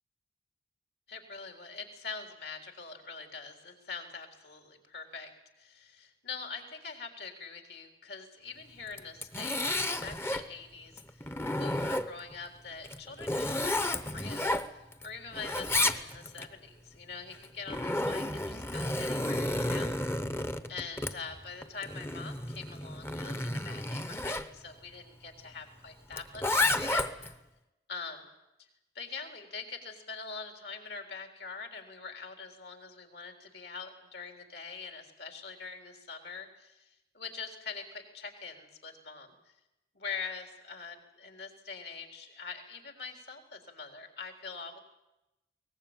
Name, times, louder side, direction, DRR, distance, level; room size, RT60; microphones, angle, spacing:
voice 1, 1.1-5.3 5.6-9.6 10.0-20.2 20.7-27.1 27.9-28.3 28.6-28.7 28.9-39.5 39.9-44.8, left 5 dB, 70° left, 5 dB, 4.0 m, -44 dB
Zipper (clothing), 8.9-10.5 11.0-12.3 12.8-15.1 15.3-16.5 17.3-24.5 26.1-27.3, left 2 dB, 15° left, 0.9 m, -32 dB
22.0 x 19.5 x 9.0 m, 0.95 s
head